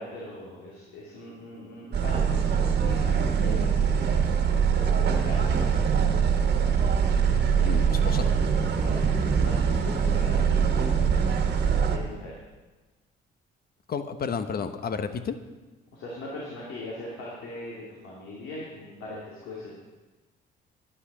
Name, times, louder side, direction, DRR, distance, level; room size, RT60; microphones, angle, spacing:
voice 1, 0.0-3.9 4.8-5.8 8.8-10.5 11.8-12.4 15.9-19.7, left 2 dB, 90° left, -4 dB, 2.7 m, -40 dB
sound 1, 1.9-12.0, right 7 dB, 55° right, 1.6 m, -23 dB
voice 2, 7.6-8.3 13.9-15.4, left 6 dB, 50° left, 10 dB, 1.0 m, -31 dB
11.5 x 10.0 x 6.2 m, 1.2 s
cardioid pair, 90°, 20 cm